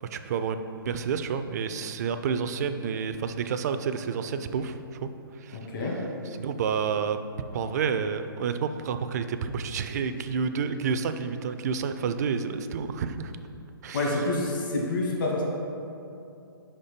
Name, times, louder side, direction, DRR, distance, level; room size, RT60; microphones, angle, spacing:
voice 1, 0.0-7.2 7.5-13.3 13.8-14.2, right 6 dB, 45° right, 9 dB, 0.4 m, -30 dB
voice 2, 5.5-6.0 13.9-15.4, left 2 dB, 55° left, -2 dB, 1.4 m, -28 dB
5.2 x 4.3 x 5.1 m, 2.7 s
hypercardioid pair, 145°, 13 cm